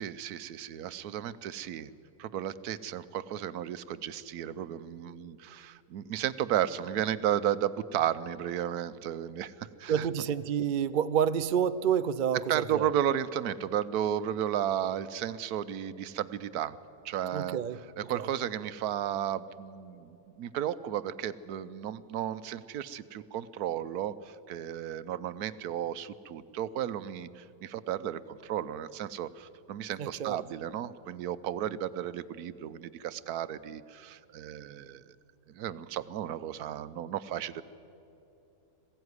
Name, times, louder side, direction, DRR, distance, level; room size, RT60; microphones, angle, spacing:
voice 1, 0.0-1.9 2.2-10.1 12.5-16.8 17.0-17.6 18.0-35.0 35.5-37.6, right 10 dB, 80° right, 14 dB, 1.2 m, -33 dB
voice 2, 9.9-12.9 17.3-17.8 18.1-18.3 30.0-30.4, right 8 dB, 55° right, 12 dB, 0.5 m, -29 dB
20.5 x 16.0 x 9.6 m, 2.8 s
omnidirectional pair, 1.6 m